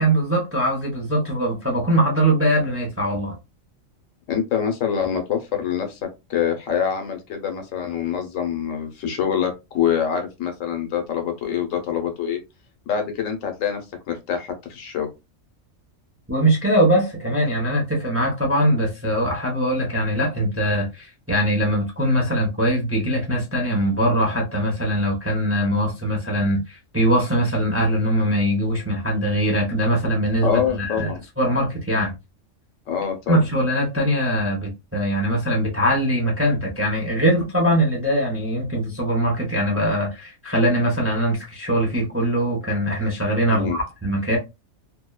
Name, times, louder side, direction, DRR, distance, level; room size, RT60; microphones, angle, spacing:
voice 1, 0.0-3.4 16.3-31.1 31.4-32.1 33.3-44.4, right 1 dB, 20° right, 0.4 m, -22 dB
voice 2, 4.3-12.4 12.9-13.8 14.1-15.1 30.4-31.2 32.9-33.4 43.5-43.8, left 8 dB, 90° left, 1.1 m, -25 dB
2.6 x 2.1 x 2.2 m
omnidirectional pair, 1.3 m